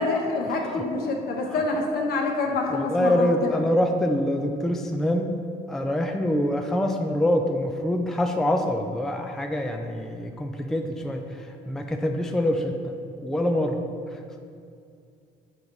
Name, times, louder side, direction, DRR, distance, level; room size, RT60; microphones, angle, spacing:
voice 1, 0.0-3.5, left 3 dB, 65° left, 1 dB, 1.1 m, -26 dB
voice 2, 0.7-1.0 1.5-1.6 2.7-5.3 5.7-14.2, left 1 dB, ahead, 4 dB, 0.4 m, -25 dB
7.2 x 4.6 x 3.9 m, 2.3 s
cardioid pair, 110°, 17 cm